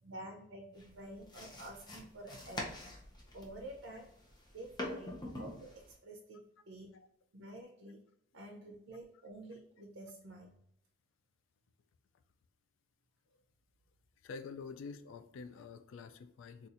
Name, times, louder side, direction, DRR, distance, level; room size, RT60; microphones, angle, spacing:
voice 1, 0.0-2.7 3.3-4.1 4.5-6.9 7.3-8.0 8.3-10.5, right 1 dB, 80° right, -1 dB, 0.6 m, -49 dB
sound 1, 0.8-6.0, left 1 dB, 20° left, 0.6 m, -45 dB
voice 2, 14.2-16.7, left 5 dB, 75° left, 11 dB, 0.3 m, -47 dB
4.1 x 2.4 x 2.5 m, 0.72 s
head